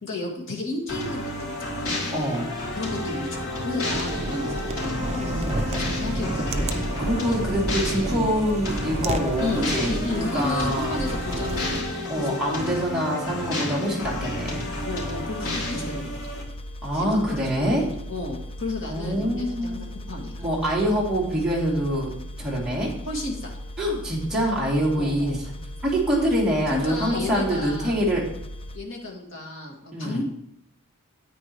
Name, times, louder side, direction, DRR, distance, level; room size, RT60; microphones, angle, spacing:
voice 1, 0.0-1.9 2.8-6.9 8.0-8.3 9.4-12.8 13.3-13.6 14.9-16.2 16.9-20.4 23.0-23.5 25.0-25.4 26.7-28.0 28.7-30.2, left 2 dB, 60° left, -1 dB, 2.0 m, -33 dB
sound 1, 0.9-16.4, left 1 dB, 80° left, 3.8 m, -31 dB
voice 2, 2.1-2.5 5.3-5.5 7.0-11.0 12.1-14.7 15.7-16.0 16.8-17.9 18.9-19.8 20.4-22.9 23.8-25.4 25.8-28.2 29.9-30.2, equal, 5° right, -7 dB, 2.7 m, -25 dB
sound 2, 3.9-11.8, right 2 dB, 30° right, 0.6 m, -30 dB
sound 3, 14.0-28.8, left 1 dB, 25° left, 0.4 m, -38 dB
9.8 x 8.8 x 3.1 m, 0.73 s
head